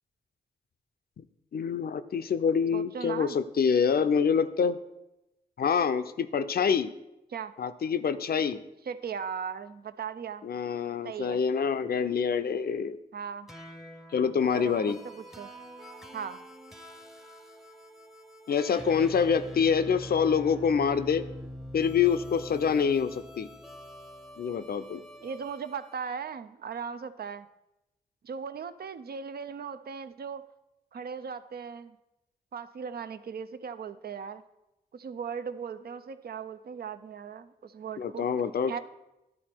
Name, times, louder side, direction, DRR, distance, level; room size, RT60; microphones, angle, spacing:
voice 1, 1.5-4.8 5.6-6.9 7.6-8.6 10.4-13.0 14.1-15.0 18.5-21.2 21.7-23.5 24.4-25.0 38.0-38.8, left 6 dB, 65° left, 11 dB, 0.5 m, -26 dB
voice 2, 2.7-3.4 7.3-7.5 8.9-10.5 11.0-11.4 13.1-13.5 14.5-15.5 16.1-16.5 25.2-27.5 28.2-30.5 30.9-32.0 32.5-34.4 34.9-38.3 38.7-38.8, right 6 dB, 65° right, 12 dB, 0.5 m, -38 dB
sound 1, 13.5-26.0, equal, ahead, 0.7 m, -45 dB
12.0 x 4.2 x 4.4 m, 0.94 s
cardioid pair, 45°, 17 cm